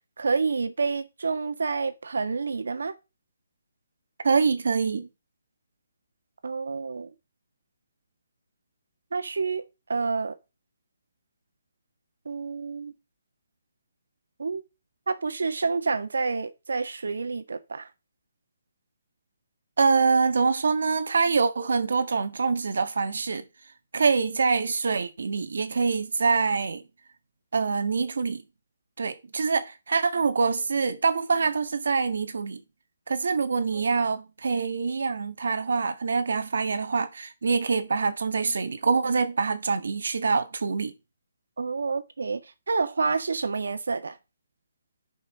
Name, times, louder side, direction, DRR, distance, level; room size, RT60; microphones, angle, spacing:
voice 1, 0.2-2.9 6.4-7.1 9.1-10.3 12.2-12.9 14.4-14.6 15.1-17.9 33.7-33.8 41.6-44.2, right 4 dB, 80° right, 1.6 m, -28 dB
voice 2, 4.2-5.1 19.8-23.4 23.9-26.8 27.5-28.4 29.0-32.6 33.1-40.9, right 4 dB, 60° right, 1.6 m, -25 dB
10.5 x 5.7 x 4.2 m
hypercardioid pair, 180°, 0 cm